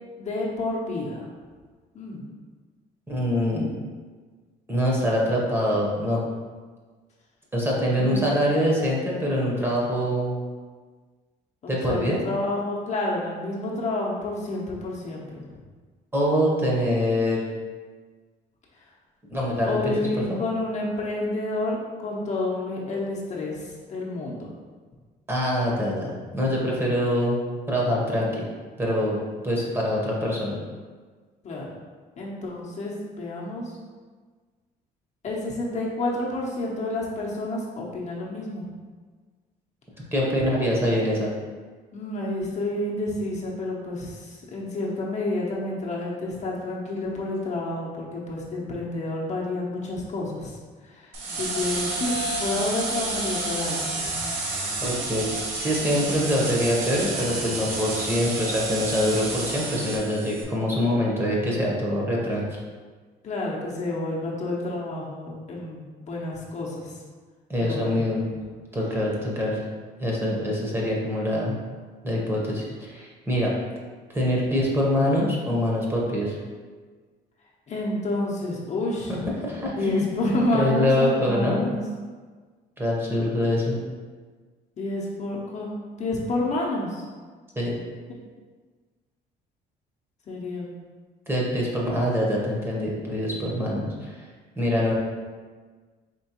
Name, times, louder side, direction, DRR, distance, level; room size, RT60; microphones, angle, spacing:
voice 1, 0.2-1.2 1.9-2.2 8.1-8.2 11.6-15.4 19.6-21.8 22.0-24.5 31.4-31.7 32.2-33.7 35.2-38.6 41.9-50.5 50.8-51.0 51.3-52.1 52.4-54.1 63.2-66.9 67.6-68.0 77.7-79.1 79.8-81.8 84.8-85.7 86.0-87.0 90.3-90.7, left 2 dB, 45° left, -4 dB, 0.8 m, -29 dB
voice 2, 3.1-3.7 4.7-6.2 7.5-10.3 11.7-12.2 16.1-17.5 19.3-20.4 25.3-27.4 27.7-28.4 28.8-30.5 40.1-41.3 54.8-62.4 67.5-68.2 68.7-69.6 70.0-71.5 72.0-73.5 74.1-76.4 79.1-81.7 82.8-83.8 87.6-87.7 91.3-94.2 94.6-94.9, equal, 15° right, -4 dB, 1.0 m, -24 dB
sound 1, 51.1-60.4, right 2 dB, 90° right, 0.9 m, -30 dB
4.5 x 3.0 x 3.0 m, 1.5 s
cardioid pair, 110°, 17 cm